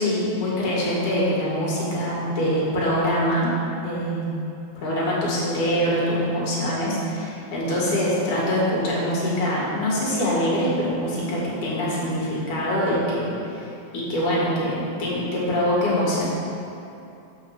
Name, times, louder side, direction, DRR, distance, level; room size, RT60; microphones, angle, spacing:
voice 1, 0.0-3.5 3.8-4.3 4.8-13.7 13.9-16.3, equal, 75° left, -6 dB, 3.7 m, -24 dB
8.0 x 5.7 x 6.6 m, 2.7 s
omnidirectional pair, 3.6 m